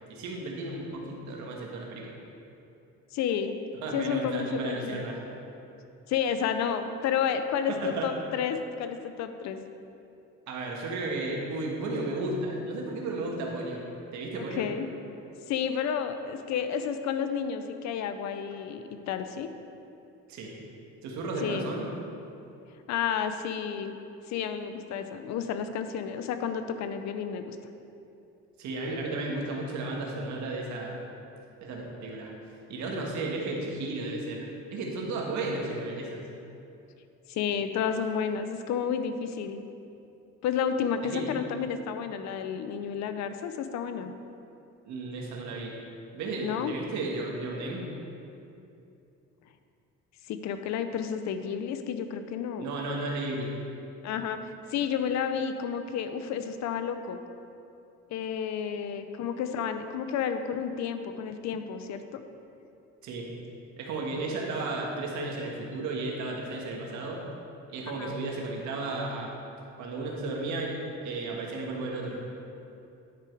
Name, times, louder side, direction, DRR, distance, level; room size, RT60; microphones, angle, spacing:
voice 1, 0.1-2.1 3.8-5.2 7.7-8.1 10.5-13.8 14.1-14.7 20.3-20.5 21.0-21.9 28.6-31.0 31.6-32.3 32.7-36.2 41.1-41.2 44.8-45.8 46.1-47.9 52.6-53.5 63.0-63.3 63.8-67.2 67.7-69.3 69.8-72.2, right 2 dB, 70° right, -1 dB, 1.6 m, -34 dB
voice 2, 3.1-3.6 3.9-5.0 6.1-9.6 14.5-14.9 15.5-19.5 21.4-21.7 22.9-23.9 24.3-27.6 37.3-39.6 40.4-44.1 46.4-46.8 50.3-52.7 54.0-57.2 58.1-62.2 68.0-68.1, left 7 dB, 65° left, 9 dB, 0.6 m, -31 dB
10.5 x 4.8 x 4.6 m, 2.7 s
cardioid pair, 100°, 30 cm